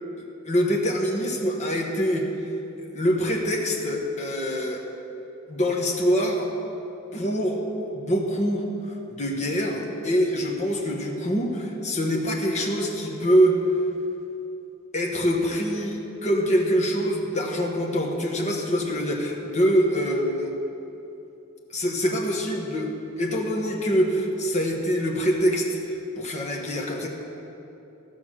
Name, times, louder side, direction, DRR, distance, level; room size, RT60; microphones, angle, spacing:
voice 1, 0.4-2.3 2.9-4.8 5.5-6.5 7.1-7.6 7.9-13.6 14.9-20.5 21.7-22.9 23.2-27.1, equal, 35° left, 0 dB, 1.3 m, -24 dB
14.5 x 6.0 x 6.3 m, 2.9 s
head